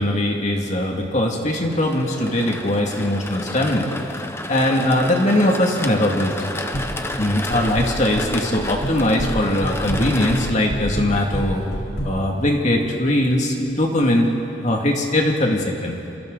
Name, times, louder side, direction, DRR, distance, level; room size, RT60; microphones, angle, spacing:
voice 1, 0.0-3.9 4.5-6.3 7.2-11.6 12.0-14.3 14.6-16.0, left 1 dB, 40° left, 1 dB, 2.3 m, -20 dB
sound 1, 1.5-10.5, left 1 dB, 15° left, 0.9 m, -31 dB
sound 2, 6.7-7.2 7.5-8.3 8.5-9.3 9.6-12.1, equal, 60° left, 4.2 m, -27 dB
28.0 x 28.0 x 4.0 m, 3.0 s
head